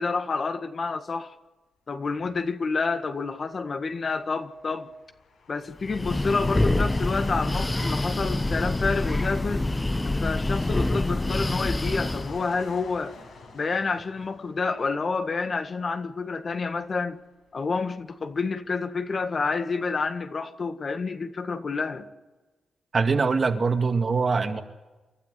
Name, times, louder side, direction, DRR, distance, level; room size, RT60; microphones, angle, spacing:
voice 1, 0.0-1.3 1.9-4.9 5.5-9.6 10.0-13.2 13.5-17.2 17.5-22.1, left 4 dB, 45° left, 1.7 m, -29 dB
sound 1, 2.2-2.4 3.5-3.6 4.4-15.8 16.4-16.6 17.4-17.5 17.7-19.3, left 3 dB, 80° left, 7.6 m, -46 dB
Breathing, 5.8-12.4, left 2 dB, 15° left, 0.7 m, -26 dB
voice 2, 22.9-24.6, right 4 dB, 45° right, 2.1 m, -23 dB
29.0 x 13.0 x 9.6 m
cardioid pair, 90°, 0 cm